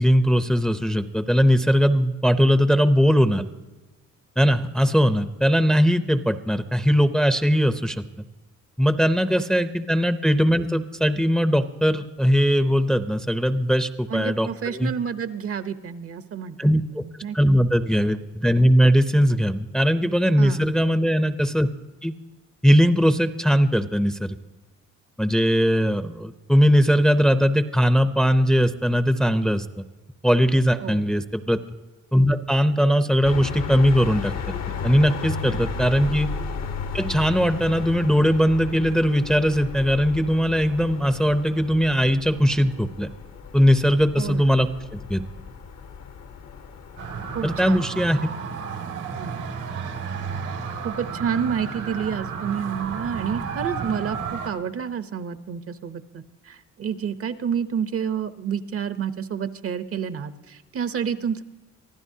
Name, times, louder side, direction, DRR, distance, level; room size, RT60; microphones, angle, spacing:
voice 1, 0.0-3.4 4.4-8.0 8.8-14.9 16.6-17.0 17.3-21.7 22.0-22.1 22.6-24.4 25.2-29.7 30.2-31.6 32.1-34.3 34.8-36.3 36.9-43.1 43.5-45.2 47.4-48.2, equal, ahead, 10 dB, 0.6 m, -20 dB
voice 2, 14.1-16.6 16.9-17.4 20.4-20.7 30.8-31.1 35.5-35.7 44.2-44.5 47.3-47.9 49.2-49.4 50.8-61.4, right 7 dB, 50° right, 11 dB, 0.8 m, -29 dB
sound 1, 33.2-47.8, left 5 dB, 60° left, 1.0 m, -34 dB
sound 2, 47.0-54.5, right 6 dB, 85° right, 2.2 m, -32 dB
24.5 x 15.0 x 2.8 m, 1.2 s
cardioid pair, 90°, 30 cm